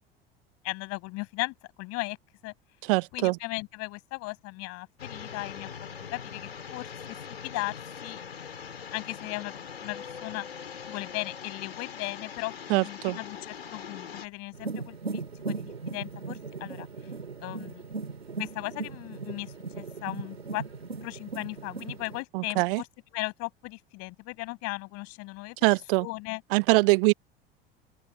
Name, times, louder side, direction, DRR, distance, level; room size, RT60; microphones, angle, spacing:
voice 1, 0.6-2.2 2.4-2.5 3.1-5.7 6.1-8.2 8.9-10.5 10.9-16.9 17.4-17.8 18.4-20.6 21.0-22.9 23.1-25.6 26.0-26.4, left 24 dB, 55° left, 7.8 m, -37 dB
voice 2, 2.9-3.4 12.7-13.2 22.3-22.8 25.6-26.0 26.5-27.1, right 26 dB, 60° right, 0.9 m, -23 dB
sound 1, 5.0-14.3, left 7 dB, 85° left, 5.7 m, -42 dB
sound 2, 14.5-22.2, right 4 dB, 90° right, 2.6 m, -38 dB
open air
figure-of-eight pair, 70°, 30 cm